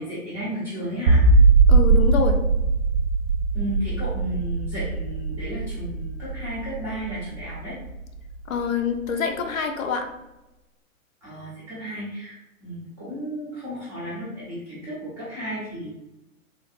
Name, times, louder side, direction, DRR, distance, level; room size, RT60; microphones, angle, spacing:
voice 1, 0.0-1.4 3.5-7.8 11.2-15.9, right 1 dB, 5° right, -12 dB, 0.4 m, -33 dB
sound 1, 1.1-8.3, right 3 dB, 60° right, 0.5 m, -20 dB
voice 2, 1.7-2.4 8.5-10.1, left 6 dB, 70° left, 5 dB, 0.6 m, -25 dB
3.1 x 2.6 x 2.5 m, 0.97 s
hypercardioid pair, 130°, 42 cm